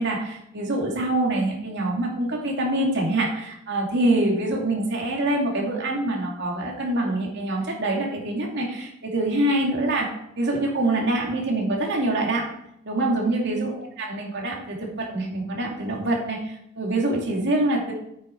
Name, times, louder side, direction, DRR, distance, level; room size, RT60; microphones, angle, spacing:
voice 1, 0.0-10.1 10.4-12.5 12.8-17.9, right 1 dB, 55° right, -1 dB, 2.5 m, -25 dB
9.0 x 7.6 x 4.5 m, 0.75 s
head